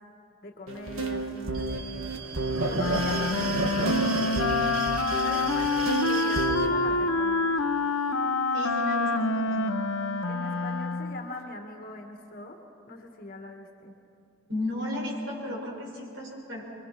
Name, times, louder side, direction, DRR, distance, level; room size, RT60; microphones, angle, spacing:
voice 1, 0.4-2.1 2.7-4.8 5.2-7.6 10.3-12.6 12.9-14.0, left 2 dB, 45° left, 2 dB, 1.7 m, -41 dB
sound 1, 0.7-6.7, right 3 dB, 80° right, 1.5 m, -30 dB
Wind instrument woodwind instrument, 2.7-11.3, left 3 dB, 75° left, 0.9 m, -27 dB
voice 2, 8.5-9.7 14.5-16.6, left 1 dB, 60° right, -2 dB, 5.5 m, -34 dB
26.0 x 23.0 x 6.0 m, 2.6 s
head